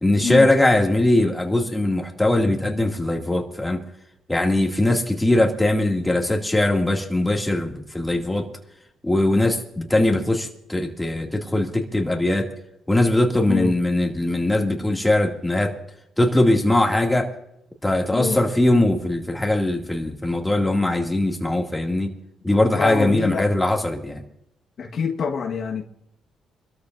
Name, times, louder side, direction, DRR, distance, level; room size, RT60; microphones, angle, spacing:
voice 1, 0.0-3.8 4.3-8.5 9.0-12.5 12.9-15.7 16.2-17.3 17.8-22.1 22.4-24.2, left 1 dB, 10° left, 2.5 m, -21 dB
voice 2, 22.8-23.5 24.8-25.8, left 5 dB, 60° left, 1.6 m, -25 dB
25.0 x 13.5 x 2.7 m
cardioid pair, 90°, 0 cm